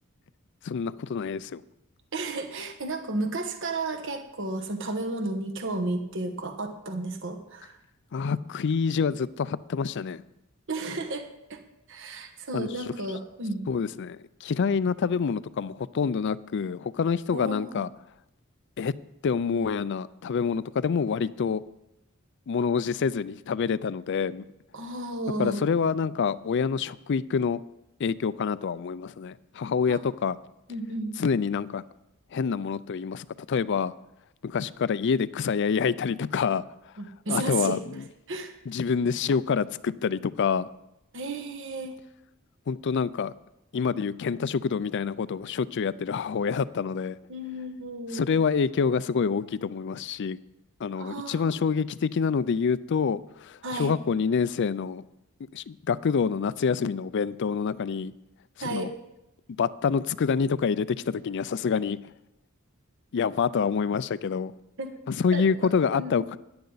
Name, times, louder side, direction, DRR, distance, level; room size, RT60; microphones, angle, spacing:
voice 1, 0.6-1.6 8.1-10.2 12.5-12.7 13.7-17.9 18.8-18.9 19.2-21.6 22.5-24.4 25.3-27.6 28.0-30.4 31.2-31.8 32.3-33.9 34.4-36.6 37.3-38.0 38.7-40.7 42.7-43.3 43.7-47.2 48.1-50.4 50.8-55.0 55.5-58.1 58.6-58.9 59.6-62.0 63.1-64.5 65.1-66.4, left 6 dB, 55° left, 17 dB, 0.4 m, -27 dB
voice 2, 2.1-7.7 10.7-11.2 11.5-11.6 11.9-13.6 17.3-17.8 24.7-25.6 29.9-30.0 30.7-31.1 37.0-37.8 38.3-38.5 41.1-41.9 47.3-48.3 51.0-51.5 53.6-53.9 58.6-58.9 64.8-64.9 65.3-65.4 65.9-66.3, right 2 dB, 65° right, 7 dB, 1.2 m, -33 dB
14.0 x 10.5 x 4.0 m, 0.89 s
head